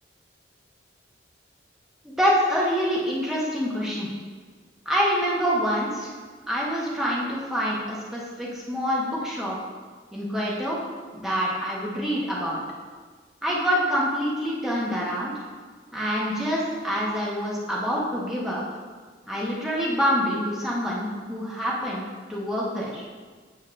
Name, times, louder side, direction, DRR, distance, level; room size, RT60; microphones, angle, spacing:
voice 1, 2.0-4.1 4.9-6.1 6.5-9.6 10.1-10.8 11.1-12.6 13.4-15.3 15.9-18.6 19.3-22.0 22.3-23.0, equal, 5° right, -6 dB, 1.0 m, -26 dB
8.7 x 6.0 x 2.5 m, 1.5 s
head